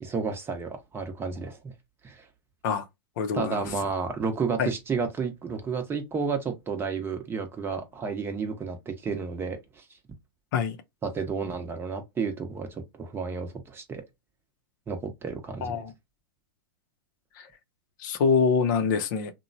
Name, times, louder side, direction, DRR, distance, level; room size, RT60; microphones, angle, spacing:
voice 1, 0.0-1.7 2.0-2.3 3.3-9.8 11.0-14.0 14.9-15.8, right 5 dB, 20° right, 0.7 m, -31 dB
voice 2, 3.2-3.6 4.6-4.7 10.5-10.8 15.6-15.9 17.4-17.5 18.0-19.3, left 5 dB, 55° left, 0.6 m, -25 dB
2.9 x 2.1 x 2.6 m
hypercardioid pair, 125°, 12 cm